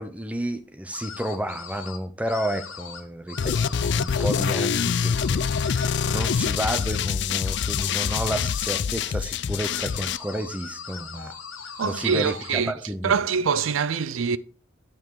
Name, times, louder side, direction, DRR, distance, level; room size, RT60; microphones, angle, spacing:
voice 1, 0.0-11.3 11.8-13.2, equal, 5° right, 0.7 m, -31 dB
sound 1, 0.9-2.0 2.3-3.0 3.3-7.1 7.4-8.8 9.6-12.6, left 6 dB, 85° left, 1.5 m, -40 dB
sound 2, 3.4-10.2, left 7 dB, 60° left, 0.4 m, -25 dB
voice 2, 11.8-12.7 13.0-14.4, right 6 dB, 85° right, 0.5 m, -24 dB
9.1 x 5.9 x 4.7 m
head